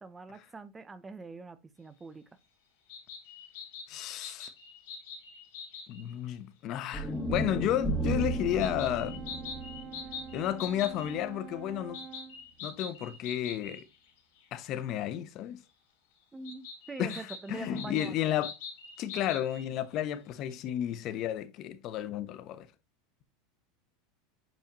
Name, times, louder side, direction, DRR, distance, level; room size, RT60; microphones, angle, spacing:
voice 1, 0.0-2.2 16.3-18.3, right 4 dB, 10° right, 0.6 m, -43 dB
sound 1, 2.9-6.1 8.6-11.1 11.9-14.1 14.4-14.5 16.4-19.7, left 5 dB, 70° left, 4.1 m, -44 dB
voice 2, 3.9-4.5 5.9-9.2 10.3-12.0 12.6-13.8 14.5-15.6 17.0-18.5 19.0-22.7, left 11 dB, 40° left, 0.8 m, -32 dB
sound 2, 6.9-11.2, right 2 dB, 5° left, 1.5 m, -34 dB
Brass instrument, 8.0-12.4, right 7 dB, 35° right, 0.9 m, -46 dB
8.8 x 5.3 x 2.9 m
supercardioid pair, 150°, 0 cm